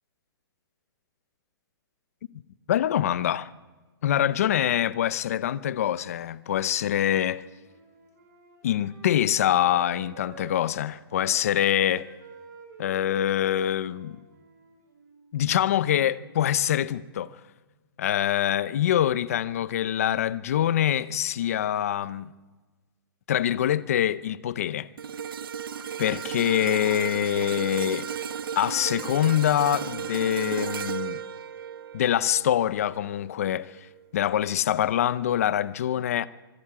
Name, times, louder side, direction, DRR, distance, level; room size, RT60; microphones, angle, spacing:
voice 1, 2.7-3.5 4.0-7.4 8.6-12.1 12.8-14.2 15.3-17.4 18.0-22.3 23.3-24.9 26.0-28.1 28.6-31.2 31.9-33.7 34.1-36.3, left 11 dB, 35° left, 0.6 m, -25 dB
Wind instrument woodwind instrument, 7.2-10.9 11.2-15.3, right 6 dB, 45° right, 5.0 m, -50 dB
sound 1, 25.0-33.3 33.8-34.0, right 8 dB, 65° right, 0.9 m, -34 dB
26.0 x 22.5 x 4.9 m
hypercardioid pair, 175°, 13 cm